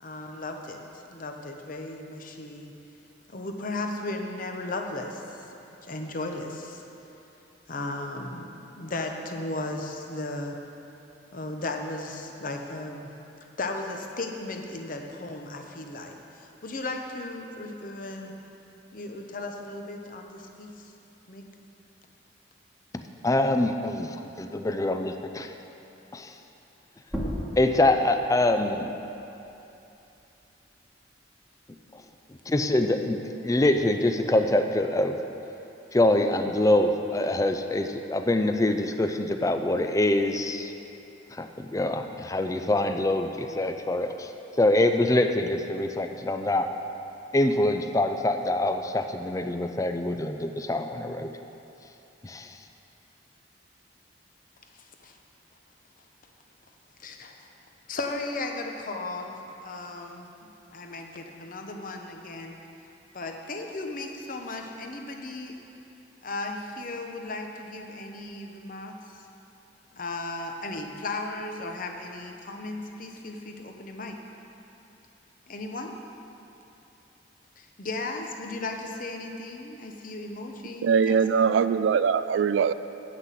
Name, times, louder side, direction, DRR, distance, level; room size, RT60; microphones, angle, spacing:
voice 1, 0.0-2.7 3.3-5.5 5.8-6.8 7.7-10.6 11.3-13.1 13.6-18.3 18.9-20.9 21.3-21.4 54.6-55.2 57.0-57.5 57.9-62.6 63.1-65.6 66.2-69.0 69.9-74.2 75.5-76.0 77.6-81.6, left 2 dB, 50° left, 0.8 m, -36 dB
voice 2, 22.9-25.5 26.1-26.3 27.6-28.9 31.9-32.0 32.5-35.1 35.9-40.7 41.3-44.3 44.6-46.7 47.3-51.3 52.2-52.6, left 1 dB, 20° left, 0.4 m, -25 dB
sound 1, 27.0-32.2 32.6-34.4, equal, ahead, 1.3 m, -40 dB
voice 3, 80.8-82.7, right 6 dB, 90° right, 0.3 m, -22 dB
8.2 x 6.0 x 7.4 m
head